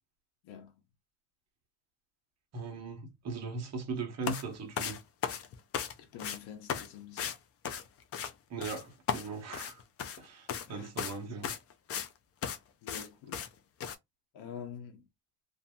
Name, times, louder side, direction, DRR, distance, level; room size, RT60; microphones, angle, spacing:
voice 1, 2.5-5.0 8.5-9.8 10.2-11.5, right 4 dB, 40° right, 1.0 m, -39 dB
sound 1, 4.2-4.4 4.8-5.9 6.2-6.4 6.7-6.9 7.2-7.4 7.6-8.3 8.6-8.8 9.1-10.2 10.5-10.7 11.0-11.2 11.4-12.1 12.4-12.6 12.9-13.1 13.3-13.5 13.8-14.0, left 8 dB, 35° left, 0.4 m, -35 dB
voice 2, 6.0-7.3 10.7-10.9 12.8-13.5 14.3-15.1, left 8 dB, 70° left, 0.9 m, -46 dB
2.7 x 2.6 x 2.2 m
cardioid pair, 135°, 41 cm